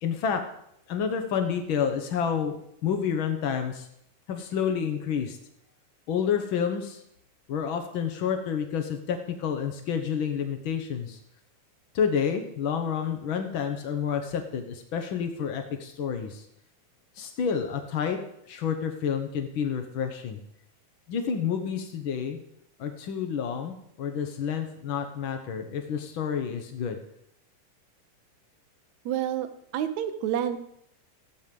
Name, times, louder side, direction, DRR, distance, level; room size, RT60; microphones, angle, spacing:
voice 1, 0.0-0.4 0.9-2.6 2.8-3.9 4.3-5.4 6.1-7.0 7.5-11.2 11.9-16.4 17.2-18.2 18.5-20.4 21.1-22.4 22.8-27.0, left 7 dB, 85° left, 6 dB, 1.1 m, -29 dB
voice 2, 29.1-29.5 29.7-30.7, right 10 dB, 70° right, 8 dB, 2.0 m, -28 dB
14.5 x 8.5 x 5.3 m, 0.74 s
omnidirectional pair, 3.8 m